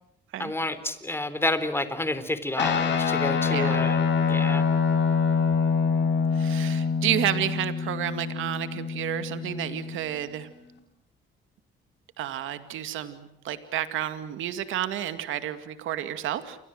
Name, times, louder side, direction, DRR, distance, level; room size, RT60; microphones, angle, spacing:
voice 1, 0.4-4.6, left 2 dB, 10° left, 12 dB, 3.7 m, -30 dB
Guitar, 2.6-10.2, left 5 dB, 65° left, 6.2 m, -25 dB
voice 2, 3.5-3.9 6.3-10.5 12.2-16.6, right 11 dB, 85° right, 10 dB, 2.2 m, -31 dB
29.5 x 24.0 x 7.7 m, 0.81 s
cardioid pair, 90°, 20 cm